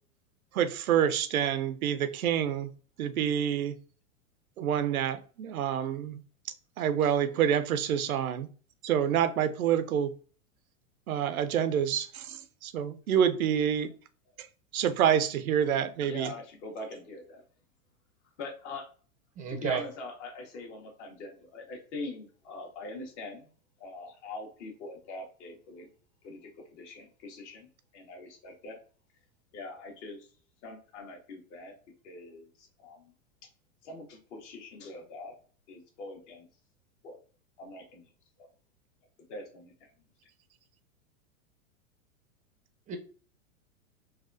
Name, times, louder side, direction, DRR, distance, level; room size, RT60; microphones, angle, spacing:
voice 1, 0.5-2.7 3.0-3.8 4.6-6.2 6.8-8.5 8.8-10.1 11.1-13.9 14.7-16.3, right 9 dB, 85° right, 0.6 m, -27 dB
voice 2, 6.8-7.1 16.0-17.4 18.4-18.9 19.5-23.5 23.8-25.9 26.2-27.7 27.9-28.8 29.5-30.3 30.6-31.7 32.0-33.1 33.8-35.3 35.7-36.5 37.0-37.2 37.6-38.1 39.3-39.7, left 2 dB, 55° left, 1.2 m, -43 dB
voice 3, 19.4-19.8 42.9-43.0, right 7 dB, 20° right, 0.5 m, -31 dB
4.0 x 2.3 x 2.5 m
hypercardioid pair, 110°, 41 cm